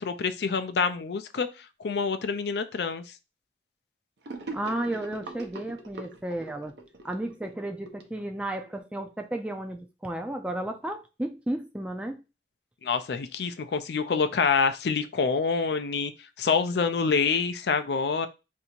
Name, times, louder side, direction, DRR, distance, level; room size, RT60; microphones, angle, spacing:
voice 1, 0.0-1.5 1.8-3.0 12.8-16.1 16.4-18.3, left 5 dB, 70° left, 0.4 m, -26 dB
Gurgling / Sink (filling or washing), 4.2-8.7, right 2 dB, 75° right, 0.7 m, -42 dB
voice 2, 4.5-6.8 7.0-12.2, right 1 dB, 5° right, 0.4 m, -33 dB
2.8 x 2.6 x 4.3 m
head